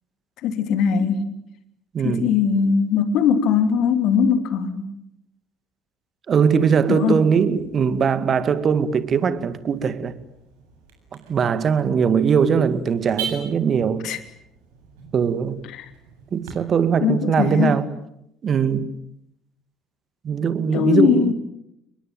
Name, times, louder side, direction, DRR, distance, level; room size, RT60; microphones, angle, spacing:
voice 1, 0.4-1.2 2.0-4.9 6.9-7.3 14.0-14.2 15.6-15.9 17.0-17.8 20.7-21.3, left 7 dB, 55° left, 3.0 m, -20 dB
voice 2, 1.9-2.3 6.3-10.2 11.1-14.1 15.1-15.6 16.3-17.9 18.4-18.9 20.2-21.3, right 6 dB, 40° right, 2.1 m, -20 dB
Car / Alarm, 7.4-16.5, right 7 dB, 65° right, 7.8 m, -41 dB
30.0 x 21.5 x 9.0 m
figure-of-eight pair, 55°, 0 cm